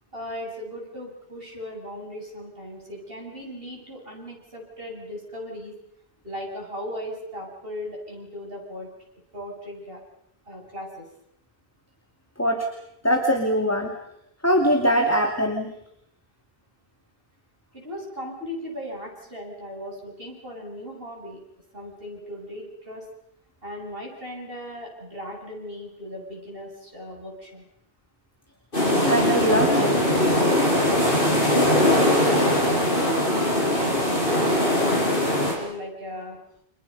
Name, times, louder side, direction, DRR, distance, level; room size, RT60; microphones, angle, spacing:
voice 1, 0.1-5.7 6.2-8.9 9.3-10.0 10.5-11.1 17.7-21.4 21.7-23.0 23.6-27.7 31.6-34.2 34.5-36.4, left 1 dB, 60° right, -1 dB, 8.1 m, -37 dB
voice 2, 13.0-14.0 14.4-15.7 29.0-30.1, equal, 15° left, 4 dB, 2.5 m, -22 dB
Atlantic Ocean At Acadia, 28.7-35.5, left 1 dB, 55° left, 7.6 m, -21 dB
30.0 x 29.0 x 5.5 m, 0.76 s
omnidirectional pair, 1.1 m